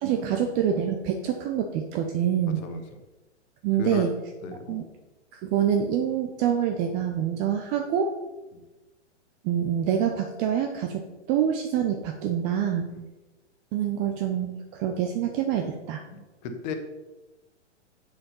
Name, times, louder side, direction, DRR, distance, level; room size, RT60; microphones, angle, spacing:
voice 1, 0.0-2.6 3.6-4.1 4.7-4.8 5.3-8.1 9.4-11.0 11.3-12.8 13.7-16.0, right 9 dB, 20° right, 5 dB, 0.4 m, -26 dB
voice 2, 4.4-4.8 8.5-8.6 12.9-13.0 16.1-16.7, left 5 dB, 35° left, 6 dB, 1.3 m, -35 dB
7.6 x 6.4 x 5.5 m, 1.1 s
figure-of-eight pair, 115°, 36 cm